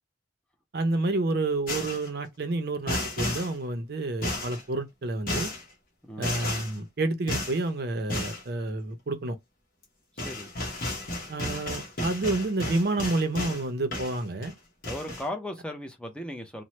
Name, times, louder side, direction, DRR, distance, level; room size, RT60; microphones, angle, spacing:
voice 1, 0.7-5.5 6.2-9.4 11.3-14.5, right 2 dB, 55° right, 0.5 m, -29 dB
sound 1, 1.7-2.1 2.9-3.5 4.2-4.6 5.3-5.6 6.2-6.7 7.3-7.6 8.1-8.4 9.8-9.9 10.2-13.6 13.9-14.5 14.8-15.3, left 1 dB, 45° left, 1.1 m, -33 dB
voice 2, 10.1-10.5 14.8-16.6, left 1 dB, 5° left, 0.5 m, -37 dB
2.9 x 2.0 x 3.1 m
head